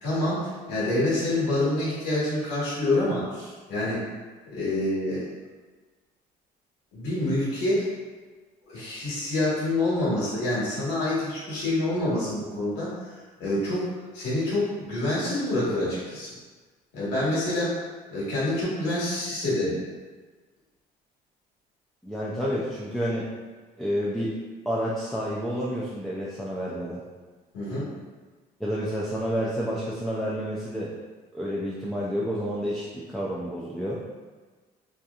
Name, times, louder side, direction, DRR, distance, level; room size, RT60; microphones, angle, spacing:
voice 1, 0.0-4.0 4.5-5.3 6.9-7.9 8.7-13.1 13.4-13.9 14.1-16.3 16.9-17.7 18.1-19.8 27.5-27.8, left 1 dB, 90° left, -10 dB, 1.3 m, -27 dB
voice 2, 22.0-23.3 23.8-24.4 24.7-27.0 28.6-30.9 31.3-34.0, equal, ahead, -6 dB, 0.3 m, -29 dB
2.7 x 2.4 x 2.3 m, 1.4 s
cardioid pair, 110°, 17 cm